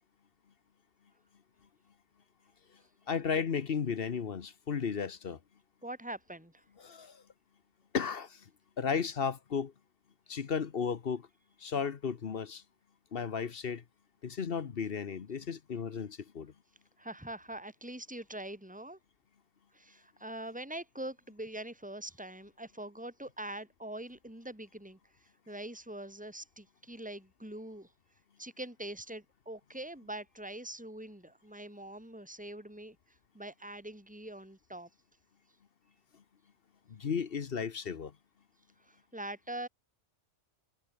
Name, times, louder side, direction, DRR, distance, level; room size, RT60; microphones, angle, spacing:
voice 1, 3.1-5.4 6.8-7.2 7.9-8.4 8.8-9.7 10.3-11.3 11.6-12.6 13.1-13.8 14.2-16.5 36.9-38.1, left 6 dB, 55° left, 1.1 m, -34 dB
voice 2, 5.8-6.6 17.0-19.0 19.7-27.9 28.4-33.0 33.3-34.9 38.8-39.7, right 1 dB, 5° right, 4.3 m, -43 dB
omnidirectional pair, 1.2 m